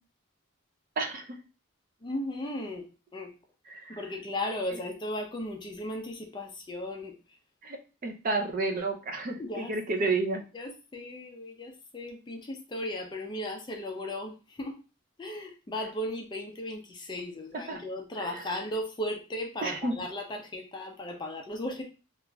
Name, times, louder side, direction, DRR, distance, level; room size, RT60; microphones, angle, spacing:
voice 1, 1.0-1.4 3.7-4.1 4.7-4.8 7.6-10.4 17.5-17.8 18.2-18.5 19.6-20.0, right 3 dB, 40° right, 5 dB, 0.4 m, -31 dB
voice 2, 2.0-2.9 3.1-3.3 3.9-7.1 9.4-9.7 10.5-14.3 14.6-14.7 15.2-21.8, left 1 dB, 20° left, 2 dB, 0.4 m, -36 dB
2.9 x 2.4 x 2.2 m, 0.33 s
head